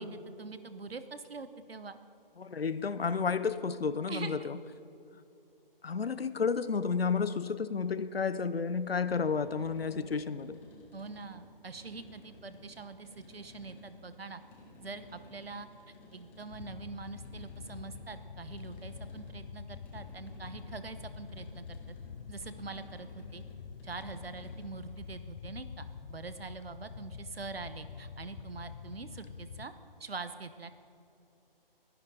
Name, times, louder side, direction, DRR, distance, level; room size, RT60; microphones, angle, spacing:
voice 1, 0.0-2.0 4.1-4.5 10.9-14.4 14.8-15.7 16.1-22.0 22.3-23.4 23.8-29.7 30.0-30.7, right 4 dB, 85° right, 11 dB, 1.2 m, -44 dB
voice 2, 2.4-4.6 5.8-10.6, left 5 dB, 85° left, 14 dB, 0.8 m, -31 dB
sound 1, 8.9-25.1, left 1 dB, 5° left, 0.6 m, -55 dB
sound 2, 16.5-29.7, left 6 dB, 45° left, 0.7 m, -46 dB
23.0 x 10.5 x 4.0 m, 2.7 s
figure-of-eight pair, 155°, 29 cm